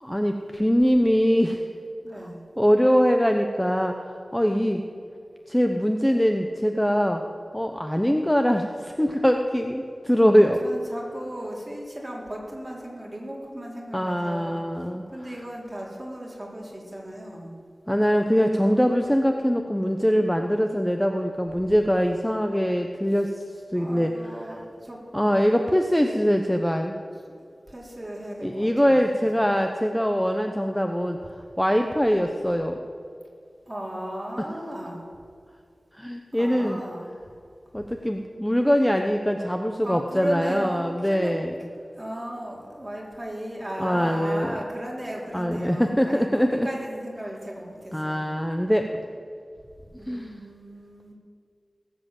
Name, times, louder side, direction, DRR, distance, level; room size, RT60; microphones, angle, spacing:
voice 1, 0.0-1.6 2.6-4.0 4.3-4.8 5.5-7.2 7.5-10.6 13.9-15.0 17.9-23.4 23.7-24.1 25.1-27.0 28.4-31.2 31.6-32.8 36.0-36.8 37.7-41.5 43.8-44.6 45.3-46.7 47.9-48.9 50.1-50.4, equal, 5° left, 5 dB, 0.8 m, -22 dB
voice 2, 2.0-2.4 10.4-17.5 23.7-25.0 27.3-27.4 27.7-29.0 33.7-35.0 36.3-37.1 37.7-37.8 39.8-41.4 41.8-48.3 50.0-51.1, right 1 dB, 20° right, -4 dB, 3.9 m, -36 dB
19.0 x 7.8 x 7.6 m, 2.3 s
wide cardioid pair, 80°, 0 cm